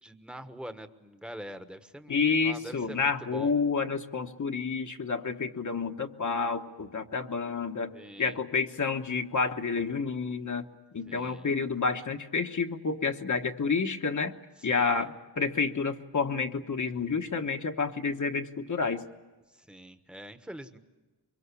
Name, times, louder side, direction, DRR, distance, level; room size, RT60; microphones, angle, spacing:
voice 1, 0.0-3.5 7.9-8.4 11.1-11.5 14.6-15.1 19.5-20.8, equal, ahead, 9 dB, 1.3 m, -44 dB
voice 2, 2.1-7.9 8.2-10.7 10.9-14.3 14.6-15.1 15.4-19.0, left 4 dB, 50° left, 5 dB, 1.2 m, -29 dB
24.5 x 23.0 x 8.4 m, 1.2 s
wide cardioid pair, 135°, 39 cm